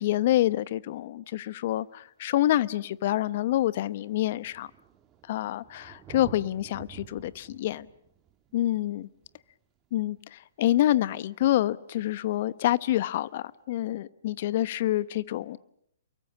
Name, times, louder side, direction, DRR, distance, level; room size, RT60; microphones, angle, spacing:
voice 1, 0.0-4.7 5.3-5.6 6.1-7.9 8.5-9.1 9.9-15.6, left 14 dB, 50° left, 0.9 m, -27 dB
Thunder, 1.7-1.8 2.8-2.9 3.1-10.4 12.1-12.2, right 10 dB, 25° right, 2.2 m, -51 dB
28.5 x 23.0 x 7.4 m
hypercardioid pair, 130°, 0 cm